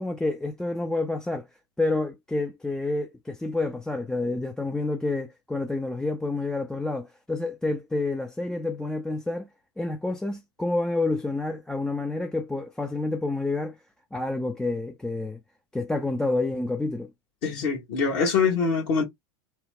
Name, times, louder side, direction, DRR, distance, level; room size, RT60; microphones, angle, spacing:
voice 1, 0.0-1.5 1.8-9.5 9.8-13.8 14.1-15.4 15.7-17.1, left 2 dB, 5° left, 0.3 m, -28 dB
voice 2, 17.4-19.0, left 5 dB, 55° left, 1.2 m, -24 dB
2.8 x 2.1 x 3.4 m
hypercardioid pair, 90°, 14 cm